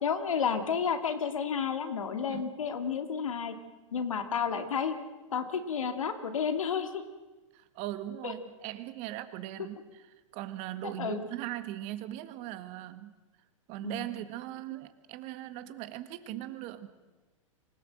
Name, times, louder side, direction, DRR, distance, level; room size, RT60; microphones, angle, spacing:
voice 1, 0.0-3.5 3.9-5.0 5.3-7.0 8.2-8.3 11.0-11.2 13.8-14.1, left 6 dB, 80° left, 8 dB, 2.3 m, -31 dB
voice 2, 7.5-10.1 10.3-13.1 13.7-16.9, right 14 dB, 40° right, 11 dB, 1.7 m, -39 dB
25.5 x 17.5 x 7.8 m, 1.2 s
hypercardioid pair, 115°, 17 cm